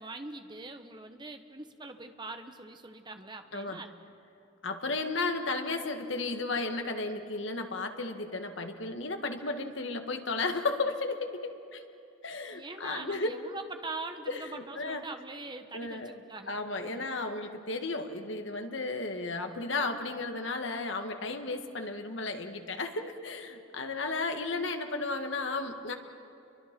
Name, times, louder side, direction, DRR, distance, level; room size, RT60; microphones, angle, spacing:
voice 1, 0.0-3.9 12.5-16.6 16.8-17.1, right 3 dB, 20° right, 6 dB, 1.2 m, -43 dB
voice 2, 4.6-11.8 12.2-13.3 14.3-15.0 15.7-16.1 16.5-26.0, left 3 dB, 70° left, 5 dB, 1.7 m, -34 dB
29.5 x 23.5 x 6.1 m, 2.7 s
head